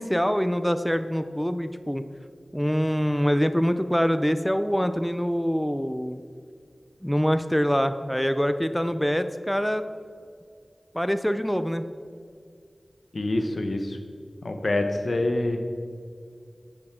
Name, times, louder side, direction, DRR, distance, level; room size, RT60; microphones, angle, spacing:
voice 1, 0.0-2.0 2.5-6.2 7.0-9.8 10.9-11.8, equal, 5° left, 10 dB, 0.5 m, -24 dB
voice 2, 13.1-14.0 14.4-15.7, left 2 dB, 70° left, 6 dB, 1.0 m, -26 dB
10.5 x 9.0 x 3.8 m, 2.2 s
cardioid pair, 45°, 0 cm